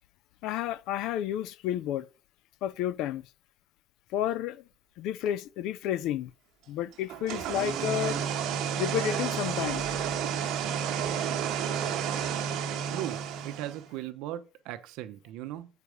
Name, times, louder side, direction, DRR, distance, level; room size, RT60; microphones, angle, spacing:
voice 1, 0.4-2.1 2.6-3.2 4.1-4.6 5.0-6.3 6.7-8.2 8.8-9.9, left 11 dB, 65° left, 0.4 m, -31 dB
drying machine, 7.1-13.9, right 8 dB, 65° right, 1.3 m, -31 dB
voice 2, 12.9-15.7, right 13 dB, 80° right, 0.8 m, -38 dB
8.2 x 4.7 x 5.0 m
cardioid pair, 180°, 0 cm